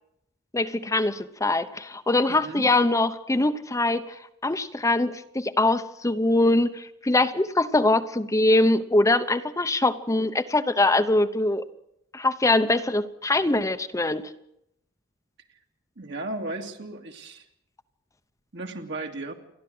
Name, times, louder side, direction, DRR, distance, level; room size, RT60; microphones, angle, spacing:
voice 1, 0.5-4.1 4.4-11.6 12.1-14.2, left 2 dB, 15° left, 9 dB, 0.8 m, -23 dB
voice 2, 2.3-2.7 16.0-17.5 18.5-19.3, right 2 dB, 60° right, 3 dB, 2.4 m, -35 dB
29.5 x 12.0 x 7.8 m, 0.81 s
head